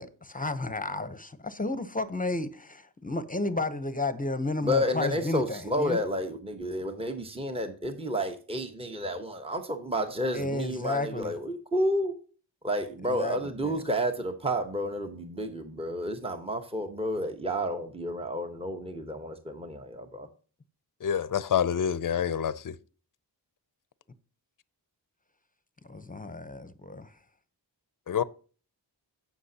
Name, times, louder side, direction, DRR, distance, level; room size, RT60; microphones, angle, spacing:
voice 1, 0.0-6.0 10.3-11.3 13.0-13.7 25.9-27.1, left 2 dB, 20° left, 0.8 m, -32 dB
voice 2, 4.6-12.1 12.6-20.3, equal, 15° right, 1.1 m, -31 dB
voice 3, 21.0-22.7 28.1-28.2, left 8 dB, 50° left, 0.6 m, -27 dB
16.0 x 6.0 x 2.8 m
wide cardioid pair, 90°, 43 cm